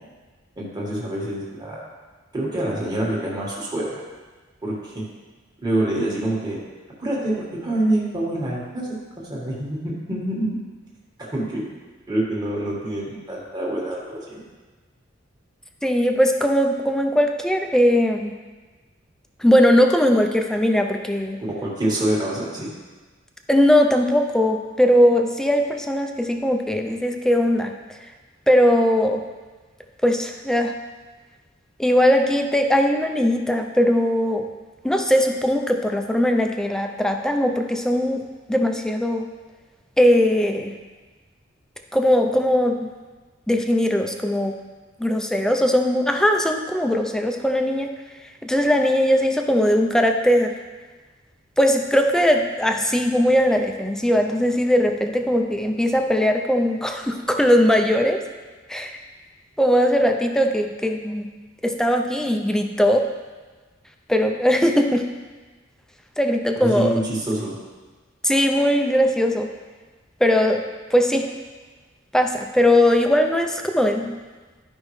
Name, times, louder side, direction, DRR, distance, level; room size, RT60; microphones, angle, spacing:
voice 1, 0.6-1.8 2.3-4.0 4.6-5.0 5.6-6.6 7.0-8.9 9.2-10.5 11.2-11.6 12.1-14.4 21.5-22.7 66.6-67.6, right 1 dB, 20° right, -5 dB, 1.7 m, -26 dB
voice 2, 15.8-18.3 19.4-21.4 23.5-27.7 28.5-29.2 30.0-30.7 31.8-34.4 34.8-39.3 40.0-40.7 41.9-42.9 43.5-44.5 45.0-47.9 48.4-50.5 51.6-58.2 58.7-58.9 59.6-61.3 61.6-63.1 64.1-65.0 66.2-66.9 68.2-69.5 70.2-70.6 70.9-71.3 72.1-74.1, equal, 5° left, 4 dB, 0.5 m, -19 dB
12.5 x 5.3 x 3.2 m, 1.3 s
head